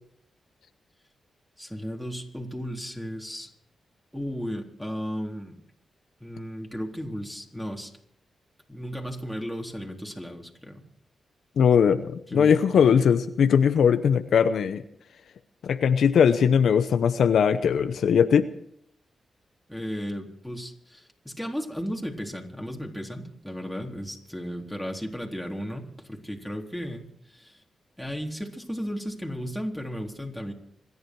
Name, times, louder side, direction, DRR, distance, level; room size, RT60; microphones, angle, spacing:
voice 1, 1.6-3.5 4.1-5.6 6.2-8.0 8.7-10.8 12.3-13.2 19.7-27.6 28.0-30.5, equal, ahead, 0 dB, 3.9 m, -35 dB
voice 2, 11.6-14.8 15.6-18.5, left 7 dB, 75° left, 10 dB, 0.8 m, -20 dB
27.0 x 11.0 x 4.7 m, 0.69 s
cardioid pair, 65°, 0 cm